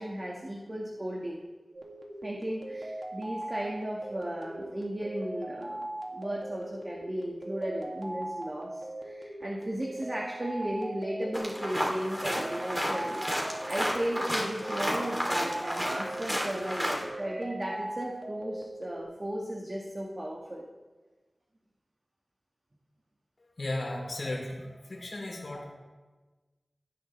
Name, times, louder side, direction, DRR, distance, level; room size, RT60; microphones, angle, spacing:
voice 1, 0.0-1.4 2.2-5.8 6.1-20.7, right 1 dB, 35° right, -2 dB, 1.7 m, -35 dB
sound 1, 1.7-19.0, right 1 dB, 60° right, 2.3 m, -40 dB
sound 2, 11.3-17.0, equal, 5° right, 3.0 m, -32 dB
voice 2, 23.4-25.7, left 1 dB, 75° left, -1 dB, 3.3 m, -36 dB
18.5 x 10.5 x 3.3 m, 1.3 s
wide cardioid pair, 60°, 0 cm